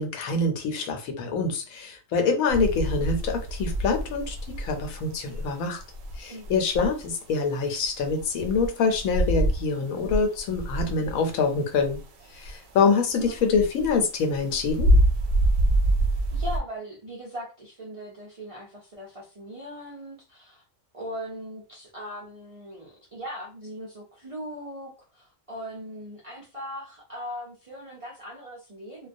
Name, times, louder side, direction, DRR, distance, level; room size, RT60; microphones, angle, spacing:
voice 1, 0.0-5.8 6.2-12.0 12.3-14.9, left 4 dB, 90° left, 4 dB, 1.0 m, -25 dB
sound 1, 2.5-7.5 7.8-9.8 10.0-12.8 13.1-16.6, right 1 dB, 75° right, 0.9 m, -26 dB
voice 2, 6.3-6.6 13.3-13.5 16.3-20.6 20.9-29.1, equal, 50° right, -5 dB, 0.4 m, -39 dB
2.3 x 2.1 x 2.5 m, 0.33 s
omnidirectional pair, 1.4 m